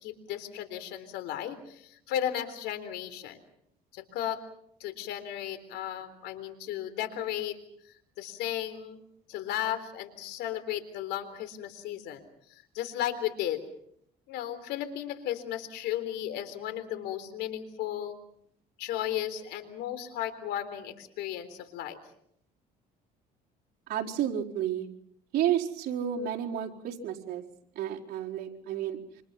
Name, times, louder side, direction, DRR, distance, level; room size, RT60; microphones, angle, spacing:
voice 1, 0.0-3.4 3.9-4.4 4.8-7.6 7.8-9.0 9.3-13.6 14.3-18.2 18.8-22.0, left 11 dB, 85° left, 12 dB, 3.8 m, -35 dB
voice 2, 23.9-24.9 25.3-27.4 27.7-29.0, right 10 dB, 65° right, -2 dB, 4.4 m, -31 dB
28.5 x 26.5 x 5.8 m, 0.69 s
cardioid pair, 110°, 17 cm